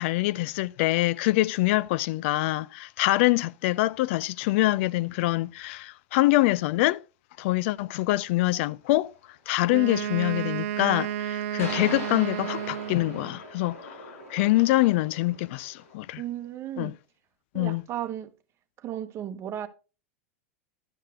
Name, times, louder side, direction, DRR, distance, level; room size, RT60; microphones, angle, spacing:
voice 1, 0.0-7.0 7.4-9.1 9.5-16.2 16.8-16.9 17.5-17.8, left 18 dB, 60° left, 0.4 m, -25 dB
sound 1, 8.8-8.9 11.6-15.9, left 1 dB, 90° left, 5.0 m, -41 dB
Wind instrument woodwind instrument, 9.7-13.4, right 11 dB, 70° right, 0.6 m, -32 dB
voice 2, 16.2-16.9 17.5-18.3 18.8-19.7, right 11 dB, 35° right, 0.9 m, -34 dB
11.5 x 6.6 x 3.1 m
hypercardioid pair, 105°, 7 cm